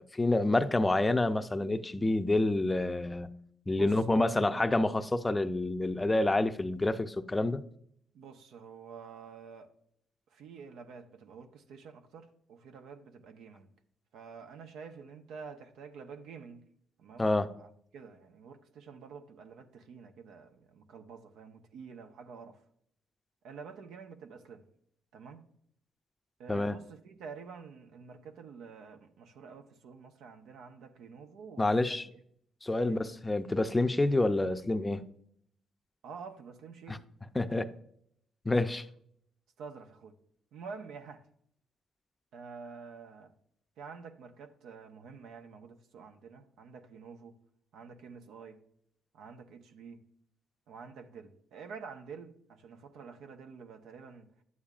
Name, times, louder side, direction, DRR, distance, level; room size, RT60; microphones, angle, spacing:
voice 1, 0.0-3.3 3.7-7.6 17.2-17.5 26.5-26.8 31.6-32.1 32.6-35.0 36.9-37.0 37.3-37.7 38.5-38.8, left 2 dB, 15° left, 0.5 m, -28 dB
voice 2, 3.7-4.8 8.1-9.7 10.3-13.7 14.1-16.6 17.0-17.3 17.6-22.6 23.4-24.6 25.1-25.5 26.4-32.0 32.8-33.0 36.0-37.1 39.6-40.1 40.5-41.2 42.3-43.3 43.8-47.4 47.7-48.6 49.1-50.0 50.7-54.3, right 5 dB, 80° right, 0.9 m, -48 dB
11.0 x 8.6 x 2.5 m
cardioid pair, 90°, 0 cm